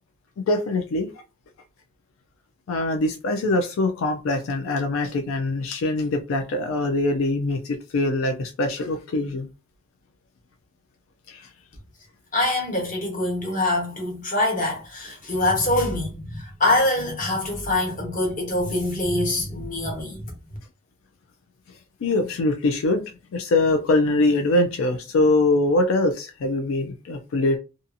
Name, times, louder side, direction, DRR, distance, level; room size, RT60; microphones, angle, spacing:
voice 1, 0.4-1.1 2.7-9.5 11.3-11.5 22.0-27.6, left 2 dB, 85° left, 0.4 m, -23 dB
voice 2, 12.3-20.3, left 2 dB, 40° left, 1.0 m, -24 dB
2.6 x 2.4 x 2.5 m
head